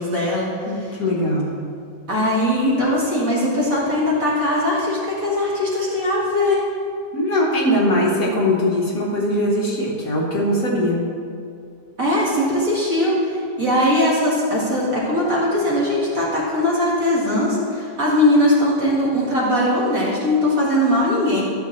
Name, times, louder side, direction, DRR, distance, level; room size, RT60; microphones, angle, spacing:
voice 1, 0.0-0.5 2.1-6.6 12.0-21.4, left 1 dB, 45° right, -6 dB, 2.1 m, -20 dB
voice 2, 0.6-1.5 7.1-11.0, left 1 dB, 50° left, -4 dB, 1.6 m, -20 dB
12.5 x 6.3 x 3.2 m, 2.3 s
omnidirectional pair, 2.1 m